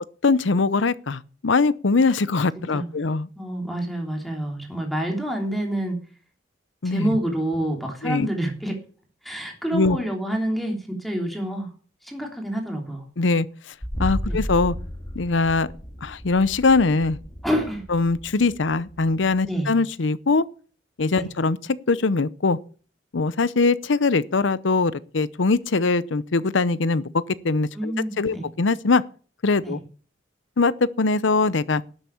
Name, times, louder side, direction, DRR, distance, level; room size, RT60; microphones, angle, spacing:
voice 1, 0.2-3.3 6.8-7.1 8.0-8.3 9.7-10.0 13.2-13.5 14.0-14.7 15.1-15.7 16.0-17.2 17.9-20.4 21.0-21.6 21.9-22.6 23.1-27.1 27.4-29.0 29.4-29.8 30.6-31.8, left 3 dB, 85° left, 0.7 m, -21 dB
voice 2, 3.4-6.0 6.8-8.8 9.2-11.7 12.0-13.0 14.2-14.4 17.4-17.8 19.5-19.7 21.1-21.3 27.7-28.4 29.6-29.8, right 1 dB, ahead, 3.1 m, -27 dB
sound 1, 13.8-19.4, equal, 20° left, 2.4 m, -33 dB
12.0 x 8.2 x 7.0 m
head